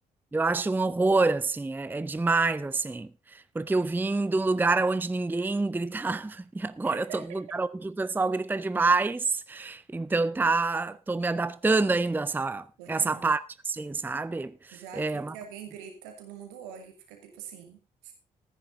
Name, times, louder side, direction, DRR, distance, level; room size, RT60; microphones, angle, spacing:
voice 1, 0.3-15.3, right 3 dB, 10° right, 0.6 m, -27 dB
voice 2, 6.8-7.4 12.8-13.3 14.7-18.1, right 8 dB, 75° right, 2.6 m, -44 dB
14.5 x 10.0 x 3.9 m
figure-of-eight pair, 40°, 19 cm